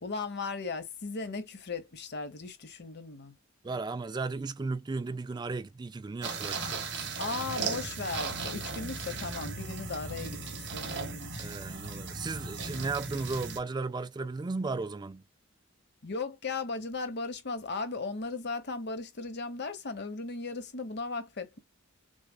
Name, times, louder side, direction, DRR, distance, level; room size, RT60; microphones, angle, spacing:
voice 1, 0.0-3.3 7.2-11.3 16.0-21.6, left 3 dB, 55° left, 1.0 m, -37 dB
voice 2, 3.6-7.1 11.4-15.2, right 3 dB, 20° right, 0.3 m, -35 dB
sound 1, 6.2-13.6, right 4 dB, 60° right, 1.5 m, -37 dB
6.3 x 2.3 x 2.2 m
head